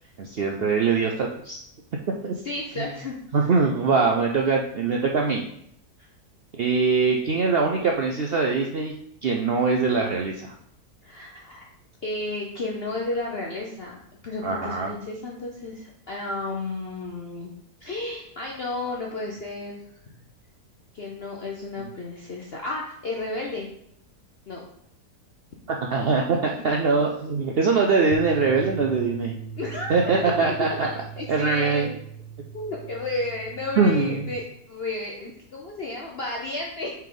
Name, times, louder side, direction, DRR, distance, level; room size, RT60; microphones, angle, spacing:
voice 1, 0.2-1.6 2.2-2.3 3.3-5.4 6.5-8.9 9.2-10.5 14.4-14.9 25.7-29.3 29.9-30.9 31.3-31.9 33.8-34.3, right 4 dB, 80° right, 1 dB, 0.5 m, -22 dB
voice 2, 2.4-3.5 6.0-6.1 11.0-11.7 12.0-17.5 17.8-19.8 20.9-23.7 24.5-24.6 27.0-27.1 29.6-32.0 32.5-36.9, left 2 dB, 50° left, -2 dB, 0.8 m, -33 dB
sound 1, 28.1-34.4, right 6 dB, 90° left, 0.4 m, -39 dB
5.5 x 5.2 x 3.8 m, 0.72 s
omnidirectional pair, 1.7 m